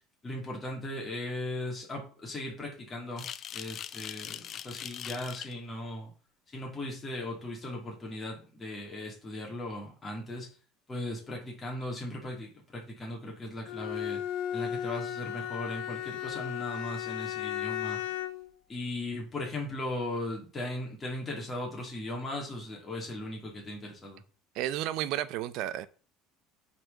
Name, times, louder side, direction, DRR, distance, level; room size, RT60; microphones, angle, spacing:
voice 1, 0.2-3.3 3.5-6.1 6.5-10.5 10.9-14.2 14.5-18.0 18.7-24.2, left 1 dB, 15° left, 2.5 m, -38 dB
sound 1, 3.2-5.5, left 9 dB, 35° left, 0.4 m, -41 dB
Bowed string instrument, 13.6-18.5, left 11 dB, 75° left, 0.7 m, -35 dB
voice 2, 24.5-25.9, right 13 dB, 60° right, 0.6 m, -32 dB
9.0 x 4.4 x 3.9 m
cardioid pair, 155°, 0 cm